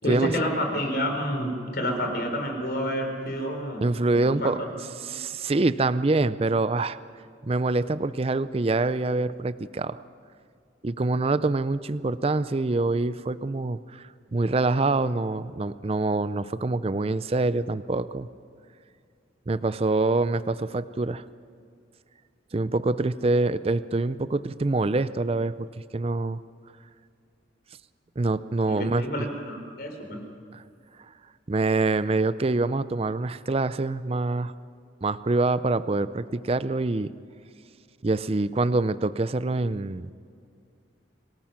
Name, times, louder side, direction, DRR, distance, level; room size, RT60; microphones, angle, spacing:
voice 1, 0.0-3.8 4.1-4.5 28.7-30.2, equal, 55° left, 3 dB, 3.9 m, -29 dB
voice 2, 3.8-4.6 5.1-7.0 7.4-10.0 10.8-18.3 19.5-21.2 22.5-26.4 28.2-29.1 30.5-30.6 31.5-34.5 35.0-37.1 38.0-40.1, right 2 dB, 30° right, 15 dB, 0.5 m, -25 dB
26.0 x 18.5 x 5.9 m, 2.4 s
head